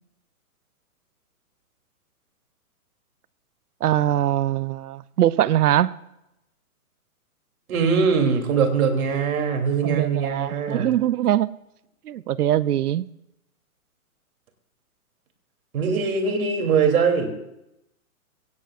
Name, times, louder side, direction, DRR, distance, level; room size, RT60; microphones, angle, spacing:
voice 1, 3.8-5.9 9.8-11.5 12.1-13.1, right 12 dB, 85° right, 17 dB, 0.7 m, -22 dB
voice 2, 7.7-10.9 15.7-17.4, right 5 dB, 65° right, 4 dB, 3.2 m, -22 dB
22.0 x 18.0 x 2.5 m, 0.85 s
hypercardioid pair, 155°, 44 cm